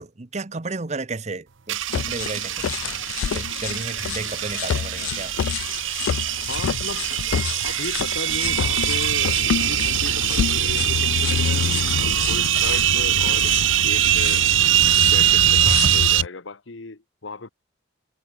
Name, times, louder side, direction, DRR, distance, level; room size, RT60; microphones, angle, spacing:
voice 1, 0.0-3.0 3.3-5.3, right 3 dB, 35° right, 0.8 m, -33 dB
sound 1, 1.7-16.2, right 13 dB, 80° right, 0.8 m, -22 dB
sound 2, 1.9-16.3, left 8 dB, 90° left, 0.3 m, -28 dB
voice 2, 6.5-7.1 7.6-11.7 12.0-14.5 14.8-17.5, left 3 dB, 75° left, 1.2 m, -36 dB
head